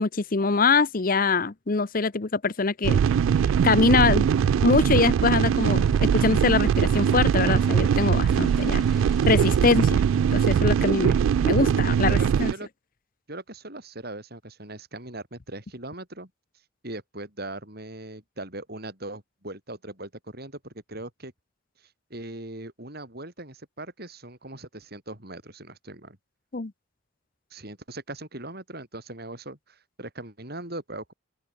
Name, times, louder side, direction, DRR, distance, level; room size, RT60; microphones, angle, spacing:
voice 1, 0.0-3.0 3.6-4.3 4.6-8.8 9.3-10.0 10.3-11.2 11.4-12.5 26.5-26.7, left 4 dB, 45° left, 0.8 m, -23 dB
sound 1, 2.8-12.5, right 7 dB, 85° right, 0.3 m, -21 dB
sound 2, 5.6-10.0, equal, ahead, 6.1 m, -50 dB
voice 2, 12.1-12.7 13.3-16.3 16.8-21.3 22.1-26.2 27.5-31.1, right 2 dB, 50° right, 7.0 m, -39 dB
open air
head